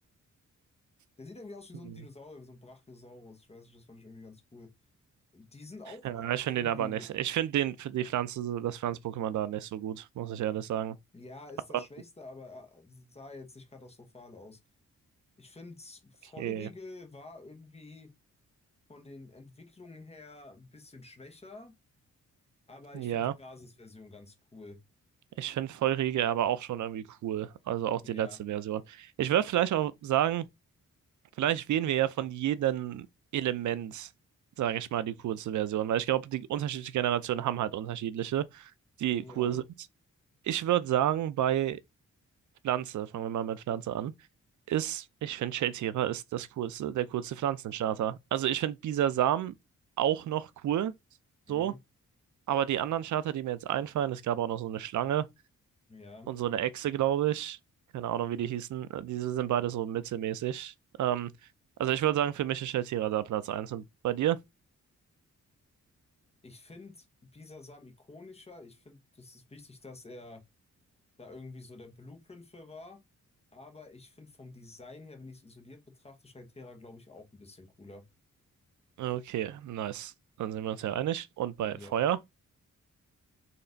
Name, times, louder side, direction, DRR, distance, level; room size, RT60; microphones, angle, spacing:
voice 1, 1.2-4.7 5.3-7.1 11.1-14.6 15.4-18.1 18.9-21.7 22.7-24.8 28.1-28.4 39.2-39.6 51.5-51.8 55.9-56.3 66.4-70.4 71.2-73.0 73.5-78.0 81.6-81.9, left 2 dB, 20° left, 1.2 m, -49 dB
voice 2, 6.0-11.0 11.7-11.8 16.4-16.7 22.9-23.3 25.4-30.5 31.4-33.1 33.3-34.1 34.6-38.7 39.0-39.6 40.4-41.8 42.6-44.1 44.7-49.5 50.0-50.9 51.5-51.7 52.5-55.3 56.3-57.6 57.9-60.7 61.0-61.3 61.8-64.4 79.0-80.1 80.4-82.2, right 11 dB, 75° right, 0.5 m, -30 dB
4.2 x 3.3 x 3.9 m
wide cardioid pair, 145°, 30 cm